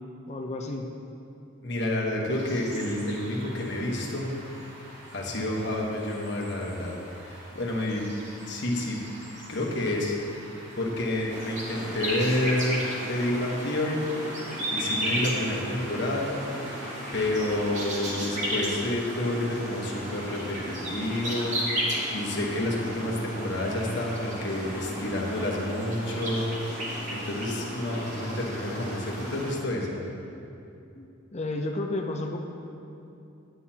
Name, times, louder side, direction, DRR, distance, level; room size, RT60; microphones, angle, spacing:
voice 1, 0.3-0.9 31.0-31.1 31.3-32.4, left 2 dB, 35° left, 2 dB, 0.5 m, -31 dB
voice 2, 1.6-4.3 5.1-6.9 7.3-8.1 8.5-9.0 9.5-10.2 10.8-14.1 14.7-16.4 17.1-26.5 26.8-30.0, left 1 dB, 60° left, -1 dB, 1.2 m, -29 dB
sound 1, 2.3-18.2, right 1 dB, 60° right, 2.2 m, -46 dB
sound 2, 11.3-29.5, equal, 35° right, 1.7 m, -34 dB
10.0 x 9.3 x 2.8 m, 2.7 s
head